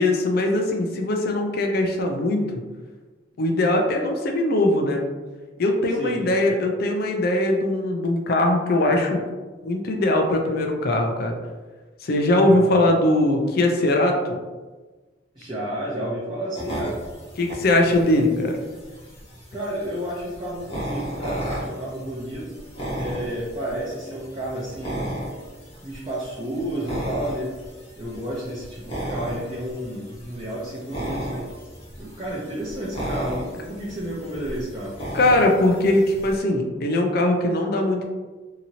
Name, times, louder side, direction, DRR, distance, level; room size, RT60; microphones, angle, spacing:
voice 1, 0.0-2.5 3.4-5.0 5.6-9.2 9.6-11.3 12.0-14.4 17.4-18.6 35.1-38.1, left 1 dB, 55° left, 3 dB, 0.5 m, -21 dB
voice 2, 6.0-6.3 12.5-12.8 15.3-17.0 17.8-18.2 19.5-22.6 22.9-25.1 25.8-27.6 28.0-31.5 32.0-35.0, right 1 dB, 25° right, -7 dB, 0.6 m, -31 dB
sound 1, 16.5-36.4, equal, 35° left, 0.8 m, -35 dB
2.8 x 2.7 x 2.7 m, 1.3 s
head